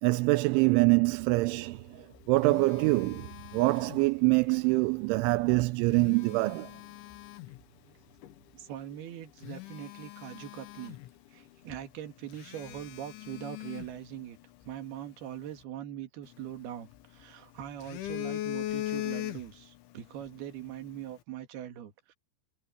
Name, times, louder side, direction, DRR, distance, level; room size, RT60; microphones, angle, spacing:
voice 1, 0.0-6.7, right 24 dB, 85° right, 3.0 m, -25 dB
Telephone, 1.9-4.5 5.7-7.6 8.2-8.4 8.9-9.0 9.4-11.4 11.7-11.8 12.3-14.7 16.3-17.2 17.6-19.8 20.1-20.3, left 15 dB, 85° left, 3.7 m, -40 dB
voice 2, 8.5-11.0 11.3-14.4 14.7-22.1, right 11 dB, 60° right, 3.7 m, -42 dB
omnidirectional pair, 5.4 m